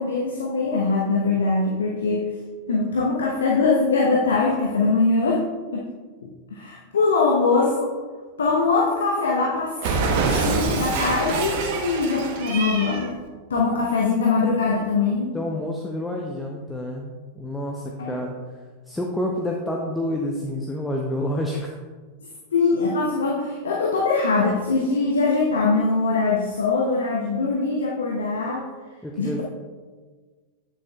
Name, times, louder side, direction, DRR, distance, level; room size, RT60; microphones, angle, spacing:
voice 1, 0.0-2.3 2.7-5.4 5.7-5.9 6.2-7.9 8.4-9.8 10.5-13.2 13.5-15.3 18.0-18.3 22.5-28.7 29.2-29.4, left 3 dB, 65° left, -2 dB, 0.8 m, -22 dB
Cat, 9.8-13.1, right 4 dB, 50° right, 0.9 m, -25 dB
voice 2, 15.3-18.3 18.9-21.7 29.0-29.4, left 1 dB, 5° left, 0 dB, 0.6 m, -28 dB
8.8 x 7.1 x 2.3 m, 1.4 s
figure-of-eight pair, 90°, 0 cm